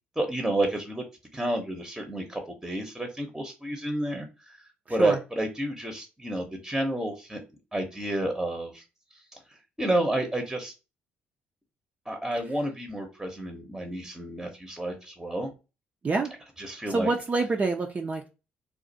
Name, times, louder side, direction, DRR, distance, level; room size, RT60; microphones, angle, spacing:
voice 1, 0.2-1.0 1.3-4.6 4.9-7.4 7.7-8.8 9.3-10.7 12.1-15.5 16.6-17.1, right 1 dB, 10° right, 4 dB, 0.8 m, -30 dB
voice 2, 16.9-18.3, right 3 dB, 35° right, 2 dB, 0.5 m, -26 dB
2.5 x 2.4 x 4.0 m, 0.30 s
supercardioid pair, 70°, 5 cm